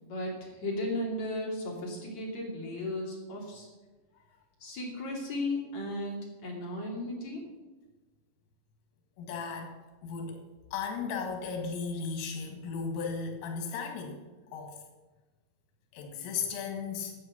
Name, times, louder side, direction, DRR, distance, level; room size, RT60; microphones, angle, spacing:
voice 1, 0.0-3.7 4.6-7.5, left 1 dB, 40° left, -2 dB, 3.2 m, -35 dB
voice 2, 9.2-9.7 10.0-10.4 10.7-14.2 14.5-14.8 15.9-17.1, left 5 dB, 85° left, 2 dB, 4.5 m, -35 dB
13.0 x 9.1 x 7.0 m, 1.2 s
omnidirectional pair, 5.8 m